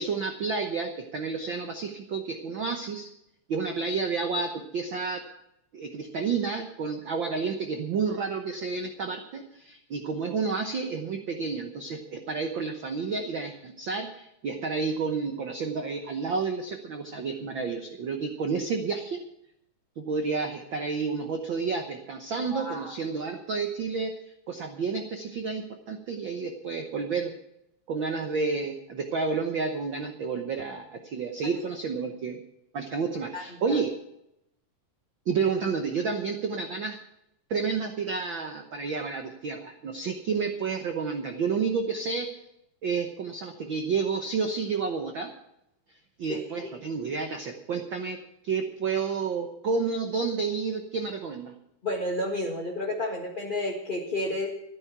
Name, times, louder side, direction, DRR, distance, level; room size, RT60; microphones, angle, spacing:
voice 1, 0.0-3.1 3.5-5.2 5.7-19.2 20.0-24.2 24.5-27.3 27.9-32.4 32.7-34.0 35.3-37.0 37.5-42.3 42.8-45.3 46.2-51.5, right 5 dB, 80° right, 5 dB, 1.1 m, -30 dB
voice 2, 22.5-22.9 33.3-33.8 46.3-46.7 51.8-54.5, left 1 dB, 30° left, -2 dB, 0.9 m, -31 dB
13.5 x 11.5 x 6.0 m, 0.81 s
omnidirectional pair, 3.7 m